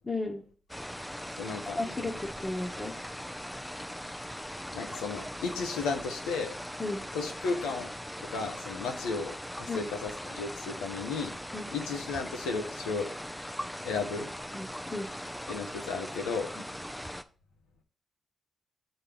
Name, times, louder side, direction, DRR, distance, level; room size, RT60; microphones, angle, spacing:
voice 1, 0.0-0.4 1.7-3.0 6.8-7.0 9.7-9.9 11.5-11.7 14.5-15.1, left 2 dB, 25° left, -2 dB, 1.2 m, -34 dB
sound 1, 0.7-17.2, equal, 5° left, 0.5 m, -40 dB
voice 2, 1.4-1.8 4.7-6.5 7.1-7.9 8.2-11.4 11.7-13.1 13.8-14.3 15.5-16.5, left 4 dB, 90° left, 4 dB, 0.9 m, -34 dB
6.6 x 4.0 x 5.0 m, 0.40 s
supercardioid pair, 50°, 0 cm